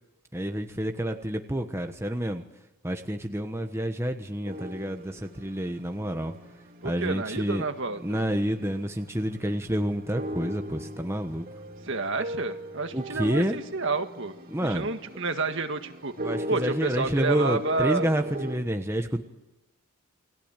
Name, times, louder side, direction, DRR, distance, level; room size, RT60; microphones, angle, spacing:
voice 1, 0.3-2.4 2.8-6.3 6.8-7.6 8.0-11.4 12.9-13.6 14.5-14.9 16.2-19.2, equal, 10° right, 5 dB, 1.2 m, -29 dB
sound 1, 4.4-18.6, equal, 40° right, 2.6 m, -39 dB
voice 2, 6.8-8.2 11.8-14.3 14.7-16.1 16.5-18.1, right 3 dB, 55° right, 7 dB, 1.8 m, -30 dB
29.5 x 20.5 x 9.1 m, 1.0 s
head